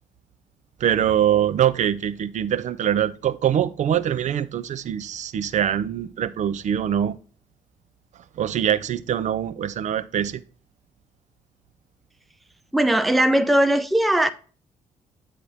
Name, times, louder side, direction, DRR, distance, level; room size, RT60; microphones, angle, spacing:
voice 1, 0.8-7.2 8.4-10.4, right 10 dB, 45° right, 0.6 m, -23 dB
voice 2, 12.7-14.3, right 1 dB, ahead, 0.5 m, -19 dB
8.4 x 6.2 x 2.7 m
figure-of-eight pair, 45°, 17 cm